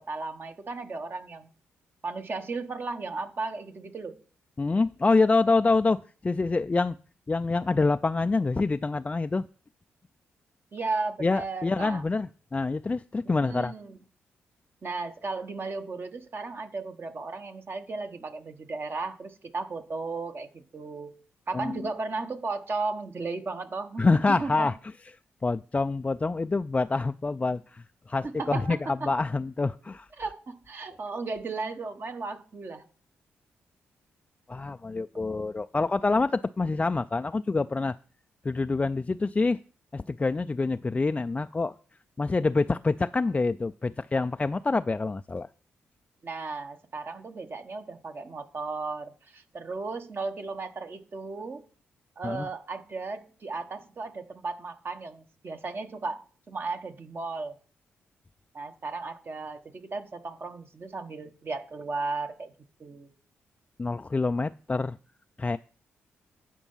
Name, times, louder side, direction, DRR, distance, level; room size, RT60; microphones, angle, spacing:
voice 1, 0.1-1.5 2.0-4.2 10.7-12.0 13.2-14.0 14.8-21.1 21.5-24.7 28.2-29.1 30.2-32.9 46.2-51.6 52.2-57.6 58.5-62.5 62.8-63.1, right 3 dB, 45° right, 7 dB, 1.2 m, -35 dB
voice 2, 4.6-7.0 7.3-9.5 11.2-13.7 21.5-21.9 24.0-24.8 25.4-28.8 29.0-30.1 34.5-38.0 38.4-39.6 39.9-41.7 42.2-45.5 52.2-52.5 63.8-65.0 65.4-65.6, left 3 dB, 25° left, 9 dB, 0.3 m, -26 dB
9.9 x 4.5 x 5.6 m, 0.40 s
supercardioid pair, 50°, 5 cm